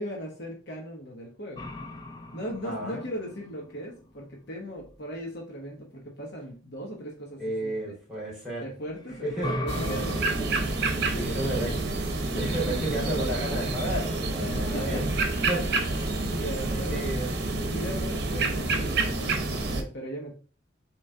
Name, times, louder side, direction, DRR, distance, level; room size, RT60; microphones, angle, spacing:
voice 1, 0.0-1.7 2.3-7.9 8.6-11.5 12.2-12.8 14.4-15.4 16.2-17.1 17.7-20.4, equal, 55° left, 0 dB, 1.0 m, -38 dB
sound 1, 1.6-5.3 8.8-11.9, left 1 dB, 20° left, 0.4 m, -39 dB
voice 2, 2.6-3.0 7.4-8.7 9.2-9.6 11.1-11.8 12.3-15.0 15.5-16.1 16.9-17.3, right 1 dB, ahead, -6 dB, 2.5 m, -32 dB
sound 2, 9.7-19.8, right 2 dB, 55° right, 0.8 m, -28 dB
3.8 x 3.1 x 4.4 m, 0.38 s
head